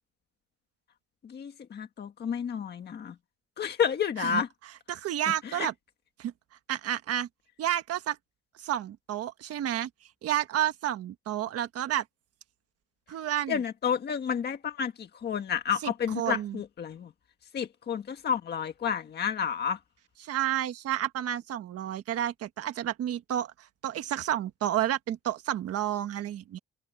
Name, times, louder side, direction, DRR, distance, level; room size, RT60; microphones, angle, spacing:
voice 1, 1.2-3.1 3.6-4.5 5.3-5.7 13.5-17.1 17.5-19.8, left 7 dB, 35° left, 1.7 m, -30 dB
voice 2, 4.9-5.7 6.2-6.3 6.7-7.3 7.6-8.2 8.6-9.9 10.2-12.0 13.1-13.6 15.8-16.6 20.2-26.6, right 11 dB, 55° right, 1.3 m, -30 dB
open air
cardioid pair, 175°, 30 cm